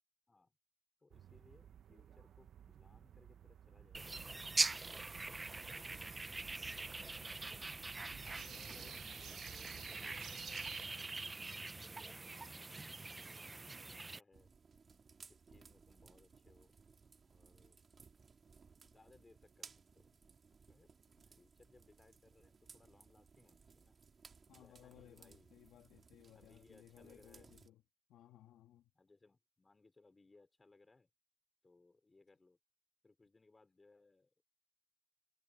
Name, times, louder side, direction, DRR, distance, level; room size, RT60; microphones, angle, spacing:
voice 1, 1.0-4.0 5.7-6.6 8.5-12.2 12.6-14.5 15.3-16.8 17.2-17.8 18.8-20.2 20.7-24.0 24.5-25.5 25.9-26.0 26.4-27.5 28.9-31.1 31.6-32.6 33.0-34.4, left 3 dB, 25° left, 5.5 m, -68 dB
sound 1, 1.1-10.9, right 9 dB, 65° right, 0.9 m, -55 dB
sound 2, 3.9-14.2, right 3 dB, 25° right, 0.7 m, -43 dB
voice 2, 8.1-9.1 24.5-27.8 28.1-28.9, left 12 dB, 80° left, 2.2 m, -62 dB
sound 3, 14.3-27.7, right 5 dB, 40° right, 2.7 m, -62 dB
cardioid pair, 90°, 0 cm